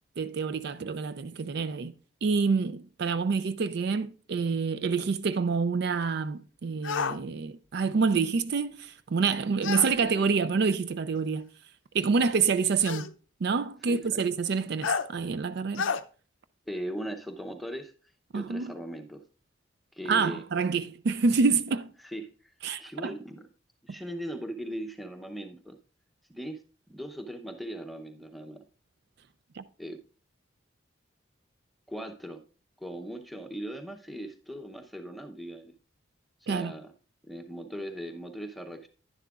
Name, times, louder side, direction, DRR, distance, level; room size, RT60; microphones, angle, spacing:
voice 1, 0.2-1.9 2.2-11.5 11.9-13.1 13.4-15.9 18.3-18.7 20.1-21.9 22.6-23.1 29.6-29.7 36.5-36.7, right 5 dB, 55° right, 0.4 m, -27 dB
sound 1, 6.8-7.2 9.6-9.9 11.2-11.3 12.8-13.1 14.8-15.1 15.7-16.0, left 6 dB, 80° left, 0.5 m, -29 dB
voice 2, 9.8-10.2 13.9-14.2 16.7-17.9 18.3-19.2 19.9-20.4 22.0-22.2 22.8-23.5 23.8-25.8 26.3-26.6 26.9-28.6 29.8-30.0 31.9-32.4 32.8-35.7 36.4-36.9 37.3-38.9, equal, ahead, 0.7 m, -39 dB
10.5 x 10.5 x 2.4 m
head